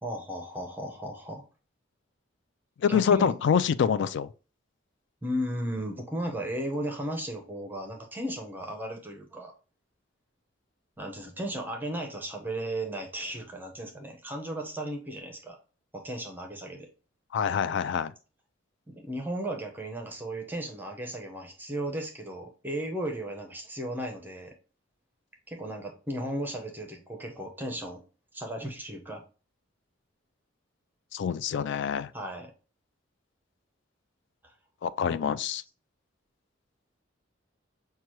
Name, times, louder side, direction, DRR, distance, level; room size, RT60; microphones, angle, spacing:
voice 1, 0.0-1.4 2.9-3.4 5.2-9.5 11.0-15.6 15.9-16.9 18.9-24.5 25.5-28.0 28.3-29.2 32.1-32.5 34.4-34.5, right 1 dB, 10° right, 0.7 m, -35 dB
voice 2, 2.8-4.3 17.3-18.1 31.1-32.1 34.8-35.6, left 7 dB, 60° left, 0.3 m, -26 dB
5.8 x 2.3 x 3.0 m
head